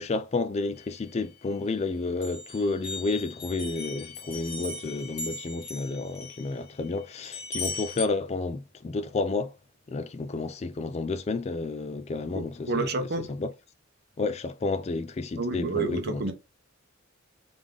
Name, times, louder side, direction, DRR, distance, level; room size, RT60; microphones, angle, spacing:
voice 1, 0.0-9.5 9.9-13.5 14.2-16.2, left 3 dB, 30° left, 0.4 m, -31 dB
sound 1, 0.8-1.8 2.2-8.1, left 3 dB, 50° left, 1.8 m, -39 dB
voice 2, 12.3-13.3 15.4-16.3, right 3 dB, 50° right, 0.8 m, -30 dB
3.6 x 3.5 x 3.6 m
head